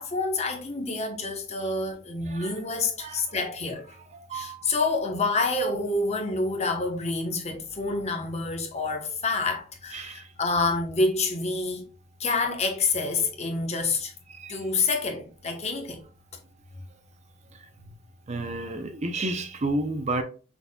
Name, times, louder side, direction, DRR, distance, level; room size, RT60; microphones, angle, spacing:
voice 1, 0.0-4.0 4.3-11.9 12.2-14.1 14.5-16.0 17.8-17.9, left 3 dB, 35° left, 1.0 m, -28 dB
voice 2, 2.3-2.6 3.0-3.2 4.1-4.6 9.9-10.3 14.3-14.6 18.3-20.2, right 2 dB, 35° right, 0.5 m, -31 dB
5.7 x 4.1 x 2.2 m
head